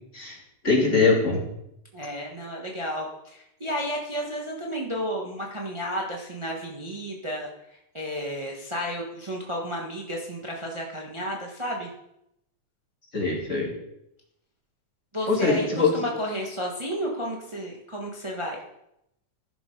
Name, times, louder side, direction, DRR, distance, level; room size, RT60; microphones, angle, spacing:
voice 1, 0.6-1.4 13.1-13.7 15.3-16.0, left 4 dB, 25° left, -3 dB, 3.1 m, -22 dB
voice 2, 1.9-7.5 7.9-11.9 15.1-18.6, equal, 35° right, -2 dB, 0.4 m, -32 dB
14.5 x 6.6 x 5.3 m, 0.82 s
omnidirectional pair, 3.3 m